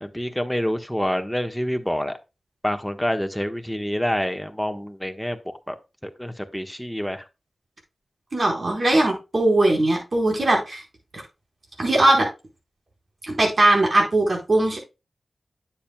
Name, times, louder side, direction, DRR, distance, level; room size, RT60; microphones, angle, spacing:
voice 1, 0.0-2.2 2.6-5.8 6.0-7.2, equal, 5° left, 7 dB, 1.4 m, -27 dB
voice 2, 8.3-10.8 11.1-11.2 11.8-12.3 13.4-14.8, right 1 dB, 55° right, 1 dB, 4.5 m, -19 dB
10.0 x 7.4 x 2.3 m, 0.27 s
cardioid pair, 40°, 0 cm